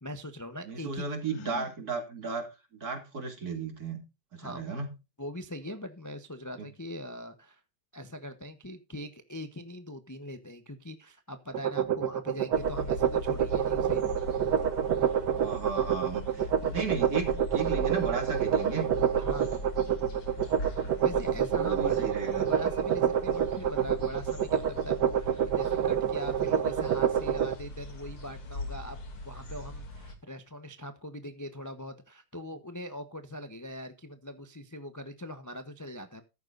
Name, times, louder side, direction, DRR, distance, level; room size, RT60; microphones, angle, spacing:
voice 1, 0.0-1.0 4.4-4.7 5.2-7.6 7.9-14.0 16.7-16.9 19.1-19.6 21.0-22.0 22.5-29.0 29.2-36.2, left 1 dB, 15° left, 8 dB, 0.6 m, -41 dB
voice 2, 0.6-2.5 2.8-4.0 4.3-4.9 6.6-6.7 15.3-18.9 21.6-22.5, right 4 dB, 45° right, 5 dB, 3.1 m, -35 dB
Gasp, 1.2-1.8, left 15 dB, 65° left, 2.1 m, -46 dB
sound 1, 11.5-27.5, right 9 dB, 60° right, 1.4 m, -27 dB
sound 2, 12.5-30.1, left 2 dB, 85° left, 3.6 m, -41 dB
14.5 x 12.0 x 2.6 m, 0.27 s
omnidirectional pair, 2.3 m